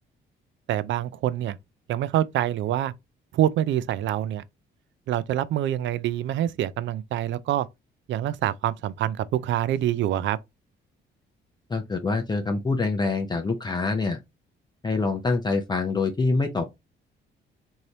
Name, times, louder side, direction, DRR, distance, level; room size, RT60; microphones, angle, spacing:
voice 1, 0.7-1.6 1.9-2.9 3.3-4.4 5.1-7.7 8.1-10.4, right 12 dB, 70° right, 0.4 m, -26 dB
voice 2, 11.7-14.2 14.8-16.7, left 3 dB, 20° left, 0.5 m, -25 dB
3.2 x 2.7 x 2.7 m
cardioid pair, 90°, 20 cm